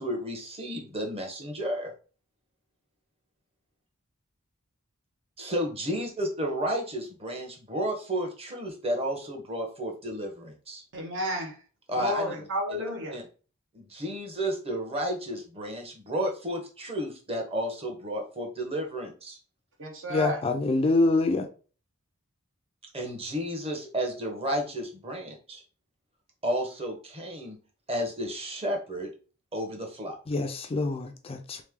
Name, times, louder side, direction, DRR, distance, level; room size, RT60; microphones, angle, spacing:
voice 1, 0.0-1.9 5.4-10.8 11.9-12.3 12.7-12.8 13.1-13.2 13.7-19.4 22.9-25.6 26.4-27.6 27.9-29.1 29.5-30.2, equal, 30° right, 1.0 m, -32 dB
voice 2, 10.9-11.5 12.0-13.2 19.8-20.4, equal, 60° right, 1.0 m, -31 dB
voice 3, 20.1-21.5 30.3-31.6, left 2 dB, 25° left, 0.4 m, -25 dB
3.5 x 3.1 x 3.6 m
head